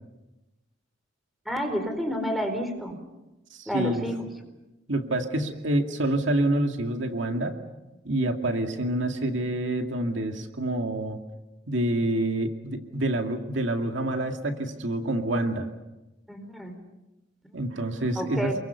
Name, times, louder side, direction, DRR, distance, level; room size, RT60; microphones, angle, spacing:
voice 1, 1.5-3.0 3.7-4.3 16.3-16.7 18.2-18.5, equal, ahead, 6 dB, 4.2 m, -29 dB
voice 2, 3.5-4.0 4.9-7.6 8.0-11.2 11.7-15.7 17.5-18.5, right 1 dB, 70° right, 4 dB, 2.3 m, -27 dB
29.5 x 23.0 x 7.0 m, 1.0 s
head